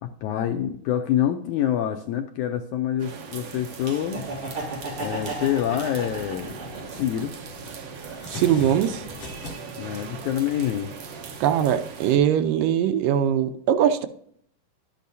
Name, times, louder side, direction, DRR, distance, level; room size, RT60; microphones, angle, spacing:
voice 1, 0.0-4.2 5.0-6.5 7.0-7.3 9.8-10.9, left 10 dB, 80° left, 5 dB, 1.8 m, -26 dB
sound 1, 3.0-12.2, right 5 dB, 60° right, 1.7 m, -40 dB
sound 2, 3.9-11.9, left 3 dB, 45° left, 3.7 m, -44 dB
Laughter, 4.0-7.2 7.6-8.7, right 3 dB, 35° right, 4.3 m, -35 dB
voice 2, 8.3-9.0 11.4-14.1, right 9 dB, 80° right, 8 dB, 2.3 m, -21 dB
11.5 x 8.4 x 2.7 m, 0.64 s
omnidirectional pair, 4.0 m